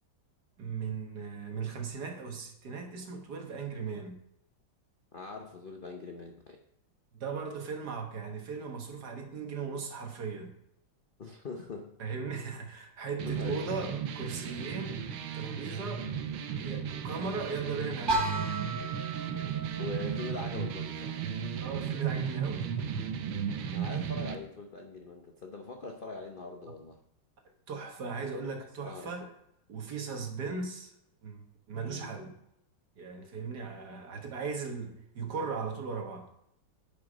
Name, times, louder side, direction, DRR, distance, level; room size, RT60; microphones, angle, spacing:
voice 1, 0.6-4.2 7.1-10.5 12.0-15.0 15.3-16.1 16.6-18.5 21.6-22.7 27.7-29.3 29.7-30.9 31.2-32.3 33.0-36.3, right 5 dB, 55° right, 3 dB, 1.8 m, -38 dB
voice 2, 5.1-6.6 11.2-12.0 13.2-13.7 19.8-21.2 23.7-27.0 28.2-28.3 28.8-29.1 31.8-32.1, left 3 dB, 80° left, 3 dB, 0.4 m, -42 dB
sound 1, 13.2-24.4, right 7 dB, 75° right, 1.6 m, -35 dB
sound 2, 18.1-23.9, right 4 dB, 35° right, 0.8 m, -36 dB
10.0 x 5.7 x 5.1 m, 0.79 s
omnidirectional pair, 2.2 m